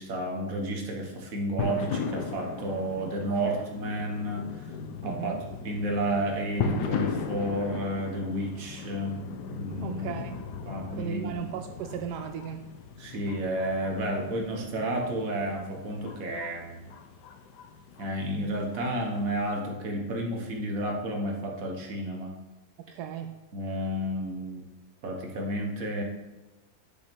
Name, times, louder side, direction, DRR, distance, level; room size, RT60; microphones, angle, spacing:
voice 1, 0.0-4.5 5.0-5.4 5.6-9.2 9.5-10.1 10.6-11.3 13.0-16.9 18.0-22.3 23.5-24.6 25.0-26.0, right 1 dB, 45° right, 1 dB, 1.6 m, -31 dB
sound 1, 1.6-19.6, left 5 dB, 65° left, 1.2 m, -37 dB
voice 2, 5.0-5.4 9.8-10.5 11.0-12.7 22.9-23.4, right 9 dB, 75° right, 7 dB, 0.9 m, -36 dB
8.3 x 6.5 x 5.3 m, 1.1 s
omnidirectional pair, 2.2 m